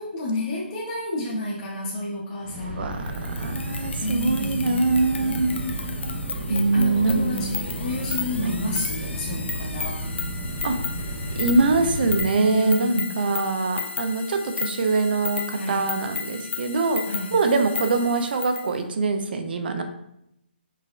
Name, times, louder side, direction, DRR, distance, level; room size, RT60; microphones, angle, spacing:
voice 1, 0.0-2.9 4.0-10.0 12.3-13.2 15.5-15.9 17.1-17.4, left 1 dB, 30° left, -5 dB, 0.6 m, -30 dB
sound 1, 2.4-12.2, right 1 dB, 80° right, 1.1 m, -32 dB
voice 2, 2.8-5.5 6.5-7.6 8.4-8.5 10.6-10.8 11.4-17.0 17.3-19.8, right 3 dB, 55° right, 6 dB, 0.5 m, -23 dB
sound 2, 3.1-18.7, left 5 dB, 85° left, 0.4 m, -34 dB
4.7 x 2.1 x 2.4 m, 0.79 s
hypercardioid pair, 155°, 6 cm